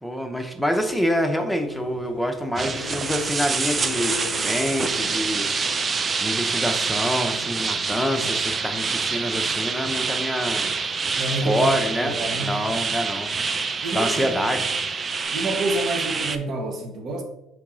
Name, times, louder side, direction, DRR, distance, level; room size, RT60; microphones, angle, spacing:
voice 1, 0.0-5.5 6.2-10.7 11.4-12.1 12.4-13.3 13.9-14.7, equal, ahead, 0.8 m, -26 dB
sound 1, 1.5-7.3 7.6-8.2 15.2-15.3, left 7 dB, 85° left, 0.4 m, -40 dB
sound 2, 2.6-16.4, right 4 dB, 35° right, 0.4 m, -26 dB
voice 2, 11.2-11.7 12.0-12.6 13.8-14.3 15.3-17.2, right 2 dB, 55° right, 1.0 m, -28 dB
4.6 x 2.9 x 3.7 m
hypercardioid pair, 70°, 0 cm